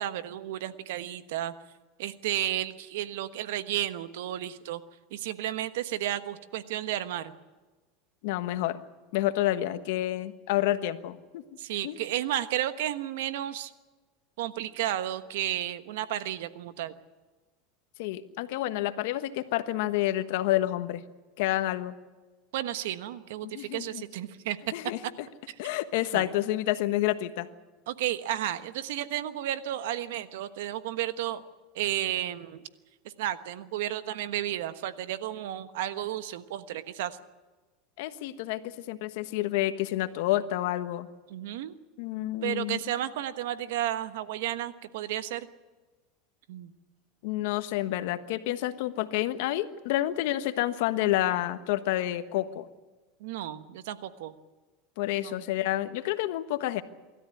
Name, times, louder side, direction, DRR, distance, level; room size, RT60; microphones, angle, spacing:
voice 1, 0.0-1.5 2.0-4.8 5.1-7.3 11.6-13.7 14.4-16.9 22.5-24.6 26.1-26.2 27.9-31.4 31.7-32.6 33.2-37.2 41.3-41.7 42.4-45.5 46.5-46.7 53.2-54.3 55.2-55.4, right 12 dB, 80° right, 11 dB, 1.2 m, -32 dB
voice 2, 8.2-8.8 9.1-11.4 11.8-12.0 18.0-21.0 21.4-21.9 23.4-24.0 24.7-25.0 25.6-27.5 38.0-41.1 42.0-42.8 47.2-52.7 55.0-56.8, left 14 dB, 75° left, 10 dB, 1.3 m, -29 dB
25.0 x 13.5 x 9.8 m, 1.3 s
supercardioid pair, 120°, 0 cm